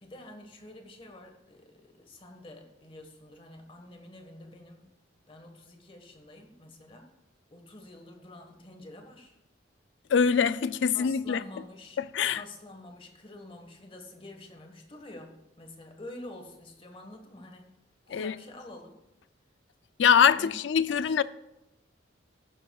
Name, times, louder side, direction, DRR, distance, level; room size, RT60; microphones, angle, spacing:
voice 1, 0.0-4.9 5.3-7.1 7.5-9.4 10.9-12.0 12.3-17.7 18.1-18.9 20.3-20.5 20.9-21.2, left 1 dB, 30° left, 1.4 m, -48 dB
voice 2, 10.1-11.4 12.0-12.4 18.1-18.3 20.0-21.2, left 7 dB, 70° left, 0.4 m, -23 dB
15.0 x 11.5 x 2.3 m
head